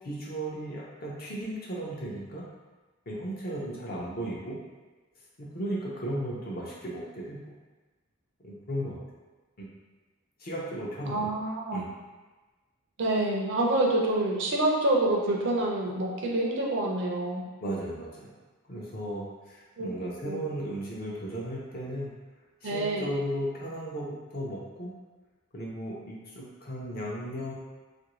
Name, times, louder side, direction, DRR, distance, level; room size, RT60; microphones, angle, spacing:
voice 1, 0.0-2.4 3.1-4.6 5.4-7.4 8.4-9.0 9.6-9.7 10.4-11.3 11.7-11.8 17.6-18.3 18.7-22.1 22.6-25.0 25.5-27.5, right 1 dB, 45° left, -4 dB, 0.6 m, -35 dB
voice 2, 11.1-11.9 13.0-17.4 19.8-19.9 20.2-20.4 22.6-23.1, right 1 dB, 55° right, -1 dB, 0.5 m, -27 dB
2.9 x 2.5 x 3.0 m, 1.2 s
head